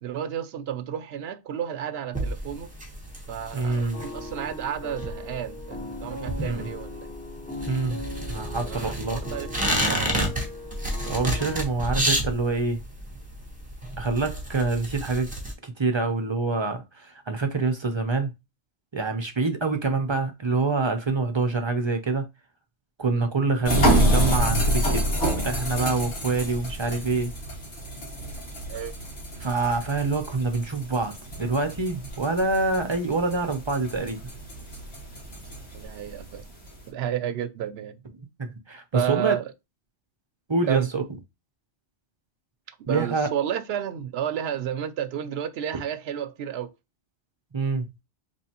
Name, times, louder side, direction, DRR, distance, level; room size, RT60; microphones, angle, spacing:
voice 1, 0.0-2.7 3.3-7.1 8.7-10.1 23.2-23.3 28.7-29.0 35.7-36.4 36.9-38.0 38.9-39.5 40.7-40.9 42.8-46.7, right 9 dB, 70° right, 0.8 m, -31 dB
sound 1, 2.1-15.5, right 1 dB, 10° right, 1.0 m, -30 dB
voice 2, 3.5-4.0 6.3-6.7 7.7-8.0 8.3-9.4 11.0-12.8 14.0-15.3 15.6-18.3 18.9-22.2 23.0-25.1 25.4-27.3 29.4-34.2 38.4-39.4 40.5-41.0 42.9-43.3 47.5-47.9, right 3 dB, 35° right, 0.5 m, -26 dB
sound 2, 3.9-11.7, left 2 dB, 10° left, 0.6 m, -39 dB
sound 3, 23.7-36.8, right 1 dB, 75° left, 2.2 m, -28 dB
4.3 x 3.1 x 2.8 m
omnidirectional pair, 1.2 m